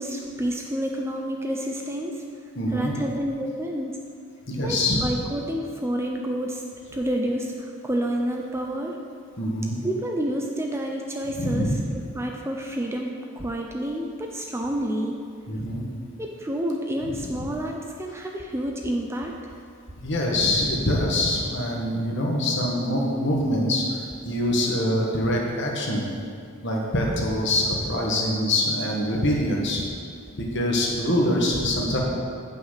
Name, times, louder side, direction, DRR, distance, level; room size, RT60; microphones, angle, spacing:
voice 1, 0.0-2.2 2.7-3.9 4.6-6.6 6.9-9.0 9.8-15.2 16.2-19.4, equal, 10° right, 1 dB, 0.4 m, -29 dB
voice 2, 2.5-2.9 4.5-5.0 9.4-9.8 11.4-11.8 15.5-15.8 17.4-17.5 20.0-26.0 26.6-29.8 30.4-32.0, left 1 dB, 50° left, -1 dB, 1.4 m, -24 dB
8.3 x 5.7 x 5.6 m, 2.3 s
head